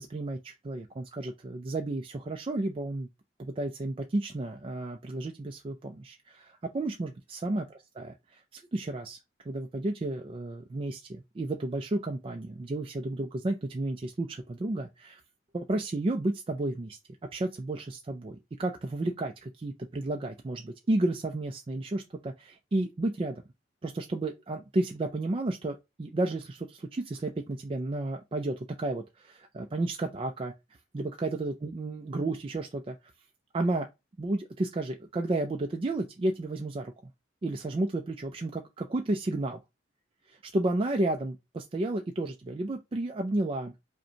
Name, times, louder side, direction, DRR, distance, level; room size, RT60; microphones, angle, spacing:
voice 1, 0.0-3.1 3.4-7.6 7.9-9.2 9.4-15.2 15.5-17.0 17.3-23.4 23.8-30.5 30.9-33.0 33.5-33.9 34.2-36.9 37.4-39.6 40.3-43.8, right 2 dB, 30° right, 0.4 m, -32 dB
5.0 x 2.2 x 2.8 m
head